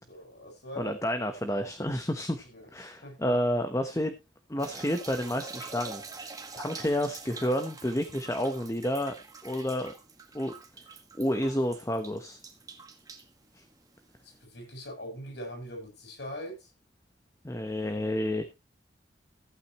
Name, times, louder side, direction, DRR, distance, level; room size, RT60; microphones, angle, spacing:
voice 1, 0.0-1.0 2.5-2.7 3.0-3.3 14.2-16.7, equal, 70° left, 7.1 m, -42 dB
voice 2, 0.8-4.1 4.5-9.1 9.4-9.9 10.3-10.5 11.2-12.4 13.5-13.6 17.4-18.6, equal, 15° left, 1.0 m, -30 dB
sound 1, 4.6-14.4, right 4 dB, 20° right, 1.8 m, -45 dB
15.0 x 9.2 x 3.1 m
head